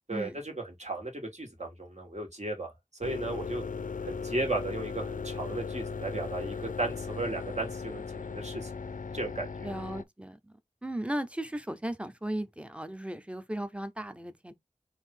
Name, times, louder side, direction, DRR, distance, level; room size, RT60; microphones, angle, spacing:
voice 1, 0.1-2.7 3.0-3.6 4.0-8.7 9.1-9.7, right 2 dB, 60° right, 1.9 m, -35 dB
sound 1, 3.0-10.0, left 5 dB, 85° left, 0.5 m, -37 dB
voice 2, 9.6-10.5 10.8-14.5, right 1 dB, 10° right, 0.7 m, -36 dB
4.5 x 2.7 x 3.8 m
wide cardioid pair, 50°, 13 cm